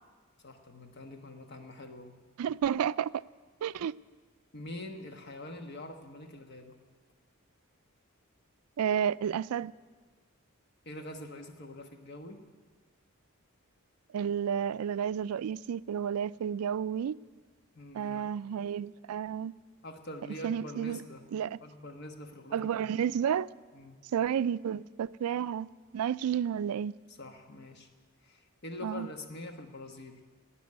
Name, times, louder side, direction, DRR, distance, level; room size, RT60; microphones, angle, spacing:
voice 1, 0.4-2.1 4.5-6.8 10.8-12.4 17.7-18.3 19.8-21.2 21.6-23.0 23.7-24.0 27.1-27.9 28.2-30.2, left 1 dB, 50° left, 1.3 m, -45 dB
voice 2, 2.4-3.1 3.6-3.9 8.8-9.7 14.1-17.1 17.9-19.5 20.4-21.0 21.3-21.6 22.5-23.5 24.1-25.7 25.9-26.9 28.8-29.1, right 8 dB, 85° right, 0.3 m, -31 dB
17.5 x 6.1 x 9.6 m
head